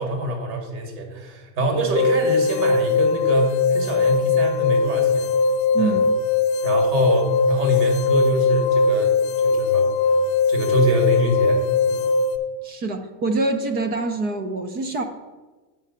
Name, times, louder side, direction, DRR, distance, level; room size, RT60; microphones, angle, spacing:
voice 1, 0.0-5.3 5.7-6.0 6.6-9.9 10.5-11.6 11.9-12.0, right 1 dB, 50° right, 2 dB, 2.5 m, -25 dB
sound 1, 1.9-12.4, left 4 dB, 45° left, 0.7 m, -20 dB
voice 2, 5.7-6.1 12.6-15.0, right 3 dB, 25° right, 7 dB, 0.3 m, -25 dB
8.3 x 4.9 x 5.5 m, 1.2 s
supercardioid pair, 140°, 48 cm